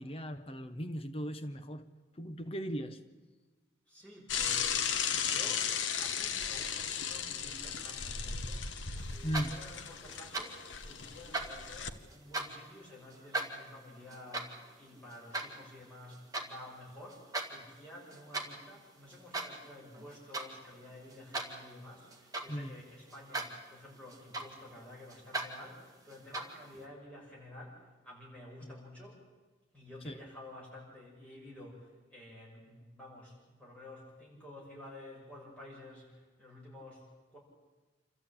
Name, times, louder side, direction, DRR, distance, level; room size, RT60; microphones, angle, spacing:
voice 1, 0.0-1.9 2.2-3.0 9.2-9.6 22.5-22.8 28.6-28.7 30.0-30.2, equal, 30° left, 0.8 m, -38 dB
voice 2, 3.9-29.2 29.7-37.4, left 1 dB, 5° left, 6.6 m, -51 dB
Bicycle / Mechanisms, 4.3-11.9, left 7 dB, 80° left, 1.1 m, -35 dB
sound 1, 9.1-9.8 10.1-10.7 11.1-12.7 13.1-16.5 16.9-17.5 17.8-18.6 19.1-19.7 19.9-20.5 20.9-22.7 23.1-23.6 23.9-24.8 25.1-25.5 26.1-26.7, right 2 dB, 20° right, 2.1 m, -39 dB
27.5 x 14.0 x 8.8 m
head